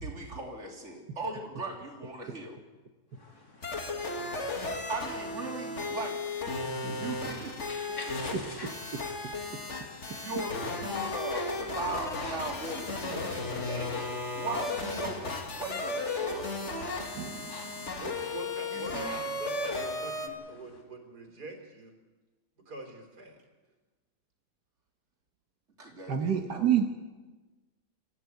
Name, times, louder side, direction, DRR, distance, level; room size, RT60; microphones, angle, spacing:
voice 1, 0.0-2.6 4.9-6.2 6.9-8.4 10.2-15.2 15.6-16.5 18.7-19.1 25.8-26.7, right 2 dB, 45° right, 0 dB, 3.6 m, -39 dB
sound 1, 3.1-20.8, left 2 dB, 70° left, 3.7 m, -50 dB
sound 2, 3.6-20.3, left 2 dB, 45° left, 2.2 m, -35 dB
voice 2, 4.2-4.5 6.6-7.1 8.3-9.0 17.2-17.5 26.1-26.9, right 8 dB, 90° right, 3 dB, 1.9 m, -30 dB
voice 3, 18.0-21.9 22.7-23.4, right 2 dB, 75° right, 4 dB, 4.3 m, -44 dB
24.0 x 15.0 x 9.5 m, 1.2 s
omnidirectional pair, 1.7 m